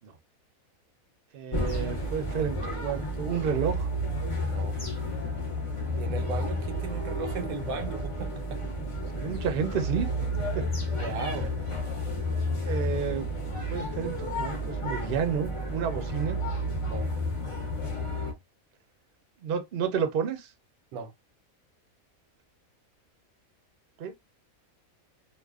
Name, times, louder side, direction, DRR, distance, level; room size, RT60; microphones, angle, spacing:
voice 1, 1.3-3.9 9.2-10.1 10.5-10.6 11.1-11.4 12.6-13.3 13.7-16.4 18.2-18.3 19.4-20.5 24.0-24.1, right 7 dB, 55° right, 0.7 m, -31 dB
sound 1, 1.5-18.3, equal, 35° left, 0.5 m, -31 dB
voice 2, 6.0-8.6 10.9-11.5 16.9-17.1 20.9-21.1, right 5 dB, 80° right, 1.0 m, -36 dB
2.5 x 2.2 x 2.3 m
omnidirectional pair, 1.5 m